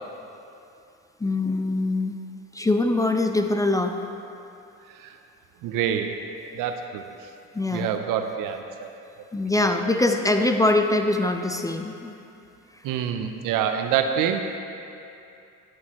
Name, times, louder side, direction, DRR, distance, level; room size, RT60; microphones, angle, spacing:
voice 1, 1.2-2.1 2.5-3.9 7.5-7.9 9.3-12.1, left 2 dB, 10° left, 5 dB, 0.3 m, -23 dB
voice 2, 5.6-6.1 6.5-7.0 7.7-8.9 9.5-9.7 12.8-14.6, right 8 dB, 70° right, 6 dB, 0.6 m, -26 dB
9.6 x 6.3 x 3.0 m, 2.6 s
supercardioid pair, 80°, 34 cm